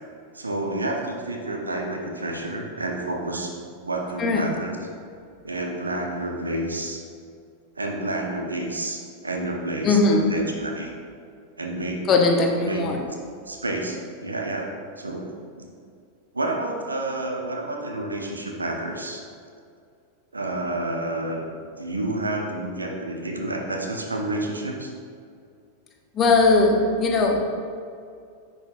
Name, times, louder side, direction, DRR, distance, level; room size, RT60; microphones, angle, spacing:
voice 1, 0.3-3.5 3.8-4.8 5.4-7.0 7.8-10.9 11.6-12.0 12.6-12.8 13.5-15.3 15.6-15.7 16.3-19.2 20.3-21.5 21.8-24.9, right 2 dB, 80° right, 1 dB, 0.7 m, -29 dB
voice 2, 4.2-4.5 9.8-10.3 12.1-13.0 26.1-27.4, left 3 dB, 25° left, 1 dB, 0.8 m, -19 dB
10.0 x 4.0 x 2.5 m, 2.3 s
figure-of-eight pair, 90°, 0 cm